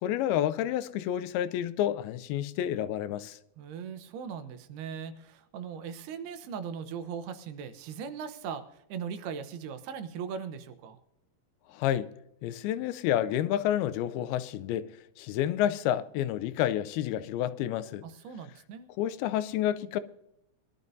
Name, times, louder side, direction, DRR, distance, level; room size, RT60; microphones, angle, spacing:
voice 1, 0.0-3.4 11.7-12.1 12.4-18.0 19.0-20.0, left 11 dB, 85° left, 2.5 m, -29 dB
voice 2, 3.6-11.0 18.0-18.9, right 7 dB, 90° right, 2.9 m, -39 dB
21.5 x 12.0 x 2.7 m
omnidirectional pair, 4.4 m